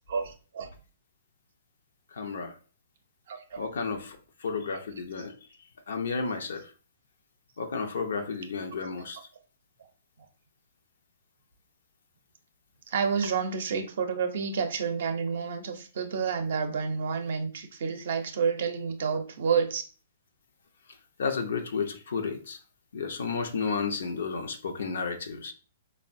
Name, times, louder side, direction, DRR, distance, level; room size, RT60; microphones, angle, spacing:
voice 1, 0.1-0.7 3.3-3.6 12.9-19.8, right 6 dB, 65° right, 0.5 m, -29 dB
voice 2, 2.1-2.6 3.6-5.3 5.9-6.7 7.6-9.2 21.2-22.6 22.9-25.5, left 5 dB, 75° left, 0.4 m, -32 dB
3.5 x 2.0 x 2.5 m
hypercardioid pair, 125°, 0 cm